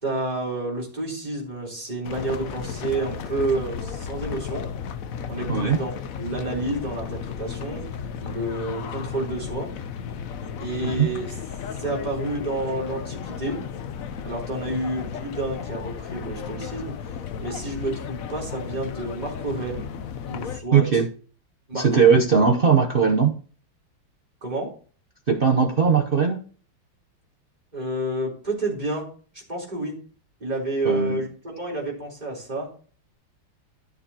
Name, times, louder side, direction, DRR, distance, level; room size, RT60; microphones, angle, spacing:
voice 1, 0.0-4.7 5.3-9.7 10.6-11.3 11.7-13.6 14.2-19.9 20.2-21.0 21.7-22.3 24.4-24.7 27.7-29.1 29.3-30.0 30.4-32.7, right 2 dB, 20° right, -3 dB, 3.9 m, -30 dB
sound 1, 2.0-20.6, left 7 dB, 60° left, 0.9 m, -34 dB
voice 2, 5.5-5.8 10.9-11.1 20.7-21.1 21.7-23.3 25.3-26.4 30.9-31.2, right 6 dB, 75° right, 2 dB, 0.5 m, -19 dB
13.5 x 6.9 x 2.9 m, 0.41 s
omnidirectional pair, 2.3 m